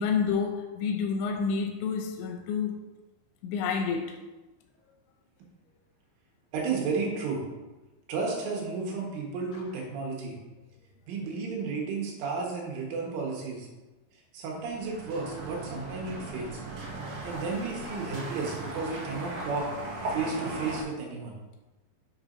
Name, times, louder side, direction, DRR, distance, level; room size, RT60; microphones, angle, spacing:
voice 1, 0.0-2.8 3.4-4.2 9.5-9.6, left 6 dB, 80° left, 4 dB, 2.8 m, -29 dB
voice 2, 6.5-7.4 8.1-10.4 11.1-13.7 14.3-16.6 17.2-19.7 20.1-21.4, right 4 dB, 85° right, -2 dB, 4.0 m, -33 dB
sound 1, 14.5-20.8, right 2 dB, 65° right, 1.9 m, -38 dB
10.5 x 6.3 x 2.7 m, 1.1 s
omnidirectional pair, 5.5 m